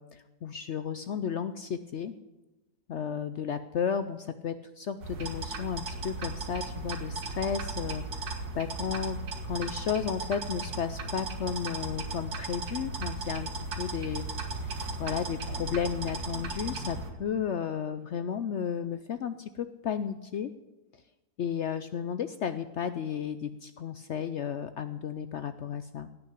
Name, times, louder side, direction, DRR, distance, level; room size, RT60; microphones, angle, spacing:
voice 1, 0.0-2.1 2.9-9.2 9.4-14.3 15.0-20.5 21.4-26.1, left 7 dB, 65° left, 11 dB, 0.7 m, -33 dB
sound 1, 5.0-17.1, right 3 dB, 70° right, 2.0 m, -36 dB
17.5 x 6.5 x 10.0 m, 1.0 s
omnidirectional pair, 1.7 m